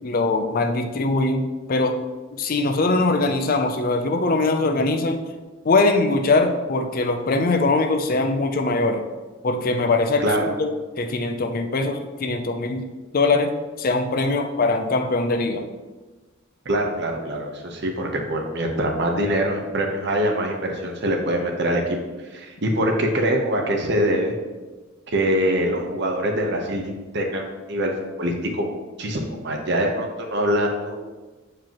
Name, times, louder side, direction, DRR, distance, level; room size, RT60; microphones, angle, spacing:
voice 1, 0.0-2.0 2.3-5.2 5.6-9.0 9.4-12.9 13.1-15.7, left 3 dB, 45° left, 6 dB, 0.5 m, -22 dB
voice 2, 16.6-22.0 22.3-24.3 25.1-27.9 28.2-28.7 29.0-31.0, equal, 55° right, 2 dB, 0.9 m, -24 dB
7.5 x 4.8 x 2.9 m, 1.3 s
head